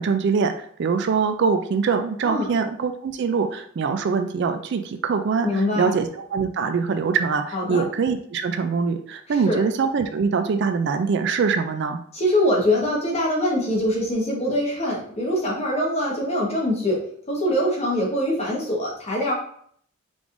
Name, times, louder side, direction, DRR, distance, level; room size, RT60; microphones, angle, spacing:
voice 1, 0.0-12.0, right 5 dB, 55° right, 8 dB, 0.3 m, -23 dB
voice 2, 5.4-5.9 7.5-7.8 9.3-9.6 12.1-17.0 17.3-19.3, left 1 dB, 30° left, -3 dB, 1.2 m, -23 dB
4.9 x 3.5 x 2.5 m, 0.62 s
head